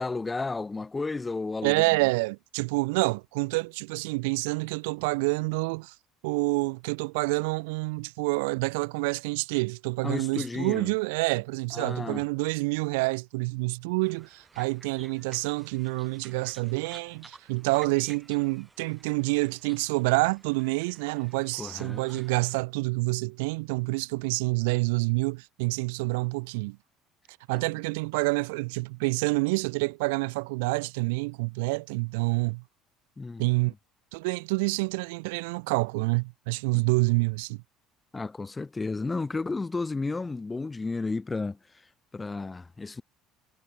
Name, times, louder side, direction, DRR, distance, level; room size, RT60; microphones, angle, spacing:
voice 1, 0.0-1.8 10.0-10.9 11.7-12.2 21.6-22.0 33.2-33.5 36.7-36.8 38.1-41.6 42.1-43.0, left 3 dB, 20° left, 0.6 m, -32 dB
voice 2, 1.6-5.9 6.2-26.8 27.5-32.6 33.4-33.7 34.1-37.6, right 27 dB, 70° right, 0.5 m, -27 dB
sound 1, 14.0-22.6, right 3 dB, 20° right, 4.4 m, -54 dB
figure-of-eight pair, 60°, 0 cm